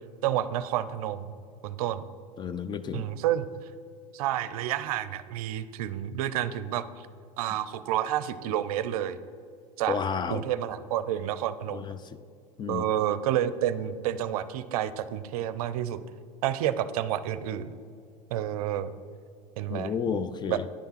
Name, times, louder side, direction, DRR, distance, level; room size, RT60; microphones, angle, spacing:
voice 1, 0.2-1.3 1.6-2.0 2.9-3.5 4.1-7.1 7.4-9.2 9.8-10.0 10.3-11.9 12.7-16.0 16.4-17.7 18.3-18.9 19.6-19.9 20.5-20.6, right 11 dB, 75° right, 14 dB, 0.5 m, -29 dB
voice 2, 2.4-3.1 9.9-10.4 11.7-12.0 12.6-12.9 19.7-20.6, left 6 dB, 25° left, 13 dB, 0.4 m, -31 dB
10.0 x 3.5 x 5.7 m, 2.3 s
hypercardioid pair, 95°, 19 cm